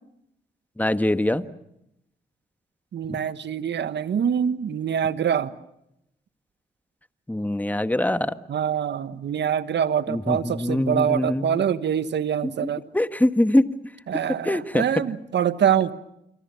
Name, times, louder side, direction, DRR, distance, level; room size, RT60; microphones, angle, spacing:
voice 1, 0.8-1.4 3.1-3.2 7.3-8.3 10.1-11.6 12.4-12.7 12.9-13.7 14.4-14.8, left 1 dB, 10° left, 12 dB, 1.5 m, -23 dB
voice 2, 2.9-5.5 8.5-12.8 14.1-15.9, right 8 dB, 65° right, 14 dB, 1.3 m, -24 dB
27.0 x 24.5 x 7.0 m, 0.82 s
supercardioid pair, 45°, 19 cm